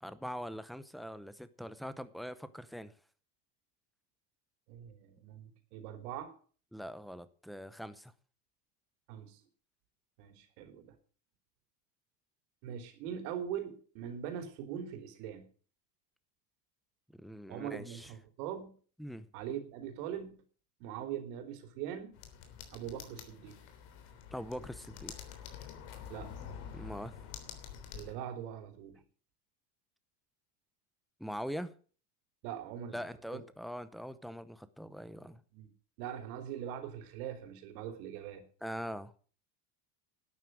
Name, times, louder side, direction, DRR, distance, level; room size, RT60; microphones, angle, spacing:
voice 1, 0.0-2.9 6.7-8.1 17.1-18.1 19.0-19.3 24.3-25.1 26.7-27.1 31.2-31.7 32.9-35.4 38.6-39.1, equal, ahead, 0.7 m, -42 dB
voice 2, 4.7-6.3 9.1-9.4 10.2-11.0 12.6-15.5 17.5-18.7 19.3-20.3 20.8-22.2 22.7-23.6 26.1-26.4 27.9-29.0 32.4-33.0 33.3-33.4 35.5-35.7 36.0-38.4, right 9 dB, 80° right, 3.5 m, -42 dB
sound 1, 22.1-28.1, left 8 dB, 75° left, 3.5 m, -47 dB
12.0 x 9.7 x 6.2 m
cardioid pair, 150°, 44 cm